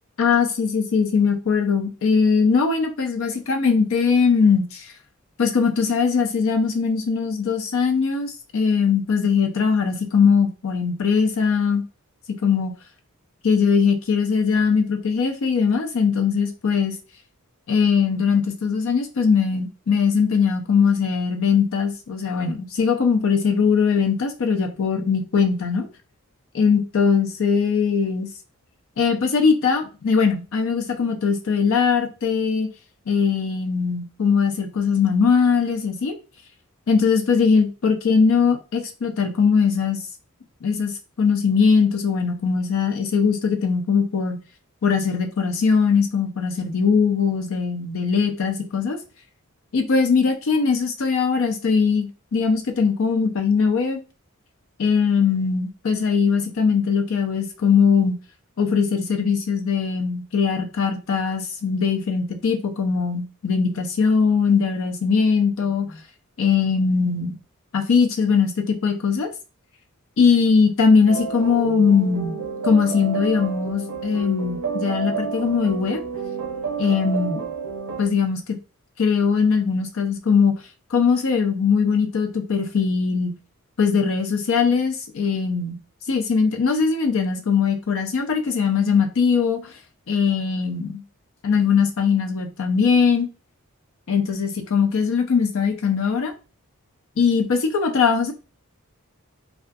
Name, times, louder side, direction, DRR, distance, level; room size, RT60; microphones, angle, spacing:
voice 1, 0.2-4.8 5.4-11.8 12.4-12.7 13.4-16.9 17.7-25.9 26.5-28.3 29.0-32.7 33.1-36.2 36.9-40.0 40.6-40.9 41.2-44.4 44.8-49.0 49.7-54.0 54.8-58.2 58.6-66.0 66.4-67.4 67.7-69.3 70.2-76.0 76.8-77.4 78.0-78.4 79.0-80.5 80.9-83.4 83.8-85.8 86.1-89.6 90.1-91.0 91.4-93.3 94.1-96.3 97.2-98.3, left 5 dB, 60° left, 0.5 m, -20 dB
sound 1, 71.1-78.1, right 5 dB, 75° right, 0.5 m, -30 dB
2.5 x 2.3 x 2.2 m
head